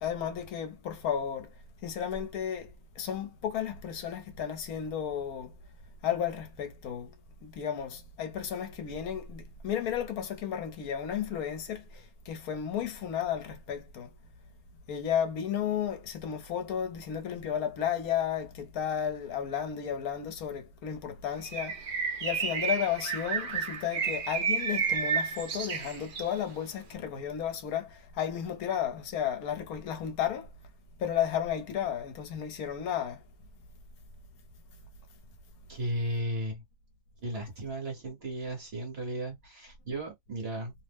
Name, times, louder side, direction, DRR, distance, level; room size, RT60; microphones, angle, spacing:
voice 1, 0.0-1.5 1.8-5.5 6.0-7.1 7.4-14.1 14.9-30.5 31.0-33.2, left 9 dB, 75° left, 1.1 m, -33 dB
Bird, 21.4-26.4, right 6 dB, 90° right, 0.4 m, -31 dB
voice 2, 35.7-36.6 37.2-40.7, right 1 dB, 45° right, 1.1 m, -35 dB
2.8 x 2.0 x 3.3 m
omnidirectional pair, 1.6 m